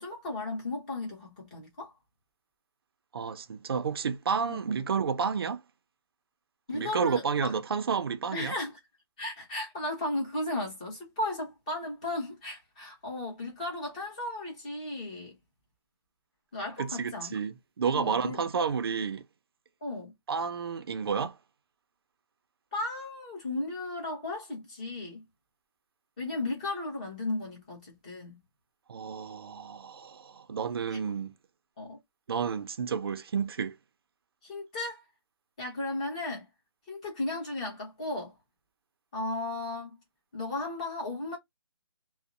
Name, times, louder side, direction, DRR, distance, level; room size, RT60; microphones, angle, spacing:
voice 1, 0.0-1.9 4.5-4.6 6.7-7.5 8.3-8.7 9.2-15.3 16.5-17.3 17.9-18.4 19.8-20.1 22.7-25.2 26.2-28.4 30.9-31.0 31.8-32.0 34.4-35.0 35.6-36.5 36.9-38.3 39.1-40.0 40.3-41.4, left 2 dB, 20° left, 0.9 m, -35 dB
voice 2, 3.1-5.6 6.7-8.5 16.8-19.2 20.3-21.4 28.9-31.3 32.3-33.8, right 6 dB, 65° right, 0.4 m, -31 dB
2.5 x 2.0 x 2.5 m
hypercardioid pair, 175°, 14 cm